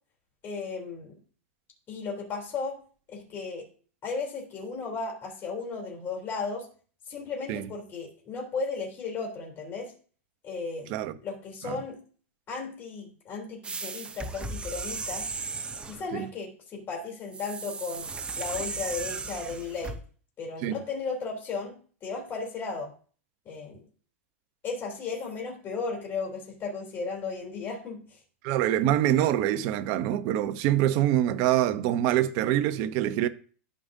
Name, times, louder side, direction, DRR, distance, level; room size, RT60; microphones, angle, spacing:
voice 1, 0.4-1.2 1.9-2.8 3.1-3.7 4.0-6.7 7.1-9.9 10.4-10.9 11.2-12.0 12.5-15.3 15.9-18.1 18.4-20.0 20.4-22.9 23.5-23.8 24.6-28.2, left 4 dB, 30° left, 3.5 m, -35 dB
sound 1, 13.6-16.1 17.3-20.0, right 4 dB, 15° right, 0.8 m, -36 dB
voice 2, 28.4-33.3, right 12 dB, 45° right, 0.8 m, -25 dB
12.5 x 5.1 x 2.8 m
hypercardioid pair, 130°, 8 cm